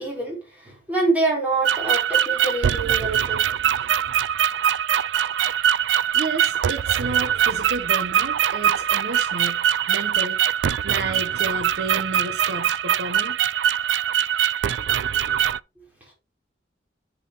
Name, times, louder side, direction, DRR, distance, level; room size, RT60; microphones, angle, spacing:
voice 1, 0.0-3.5 3.7-3.8, right 3 dB, 10° right, 4.1 m, -26 dB
sound 1, 1.6-15.6, right 9 dB, 85° right, 0.3 m, -22 dB
voice 2, 6.1-10.4 10.6-13.4, right 3 dB, 65° right, 0.9 m, -32 dB
8.5 x 6.4 x 3.0 m
head